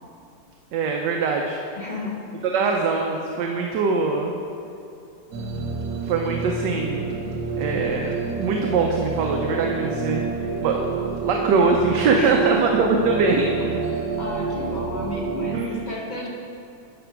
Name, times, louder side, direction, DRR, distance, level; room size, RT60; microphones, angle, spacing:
voice 1, 0.7-1.6 2.5-4.3 6.1-7.3 7.6-13.5 15.5-15.8, right 4 dB, 70° right, 1 dB, 1.2 m, -23 dB
voice 2, 1.8-2.2 12.1-12.8 13.6-16.3, left 1 dB, 65° left, -3 dB, 0.4 m, -32 dB
sound 1, 5.3-15.6, right 4 dB, 55° right, 1.4 m, -28 dB
9.9 x 6.1 x 4.6 m, 2.6 s
omnidirectional pair, 2.0 m